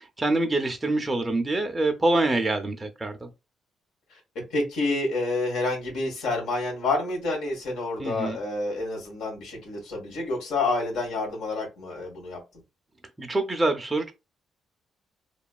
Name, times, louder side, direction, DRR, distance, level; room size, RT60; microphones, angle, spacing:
voice 1, 0.0-3.3 8.0-8.4 13.2-14.1, right 2 dB, 20° right, 0.5 m, -25 dB
voice 2, 4.5-12.4, left 2 dB, 80° left, 1.6 m, -28 dB
3.0 x 2.2 x 2.3 m
cardioid pair, 90°, 0 cm